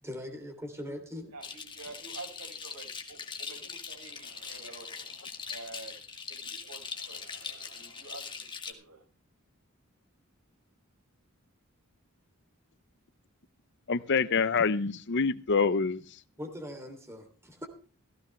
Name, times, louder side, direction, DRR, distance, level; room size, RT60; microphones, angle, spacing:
voice 1, 0.0-1.3 16.4-17.7, left 1 dB, 10° right, 3.0 m, -41 dB
voice 2, 1.3-5.9 6.3-9.0, right 3 dB, 80° right, 5.8 m, -48 dB
sound 1, 1.4-8.7, left 5 dB, 20° left, 2.0 m, -42 dB
voice 3, 13.9-16.0, left 5 dB, 55° left, 0.7 m, -26 dB
16.5 x 15.5 x 3.3 m
head